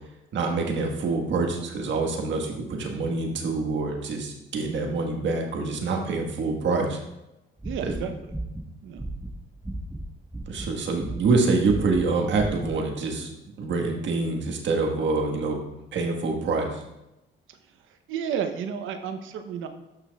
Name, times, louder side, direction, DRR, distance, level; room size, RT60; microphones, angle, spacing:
voice 1, 0.3-7.0 7.8-8.1 10.5-13.3 13.6-15.6 15.9-16.8, right 3 dB, 70° right, 2 dB, 1.5 m, -26 dB
sound 1, 7.6-10.1 10.3-10.7 11.0-11.4 11.6-12.0 12.3-12.7, right 1 dB, 10° right, 1.5 m, -34 dB
voice 2, 7.6-8.3 8.8-9.0 17.5-17.6 18.1-19.7, right 7 dB, 85° right, 8 dB, 0.8 m, -32 dB
12.0 x 5.9 x 2.4 m, 0.92 s
cardioid pair, 90°, 20 cm